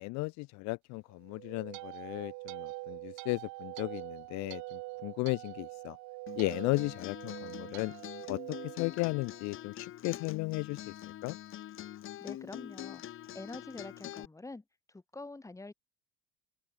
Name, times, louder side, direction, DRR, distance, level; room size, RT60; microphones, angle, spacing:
voice 1, 0.0-6.0 6.4-7.9 8.3-10.9 11.2-11.4, left 26 dB, 60° left, 0.7 m, -35 dB
sound 1, 1.2-9.6, right 25 dB, 65° right, 1.6 m, -44 dB
Acoustic guitar, 6.3-14.3, left 12 dB, 40° left, 1.8 m, -45 dB
voice 2, 12.2-14.6 14.9-15.7, left 2 dB, 10° left, 4.8 m, -46 dB
open air
supercardioid pair, 120°, 31 cm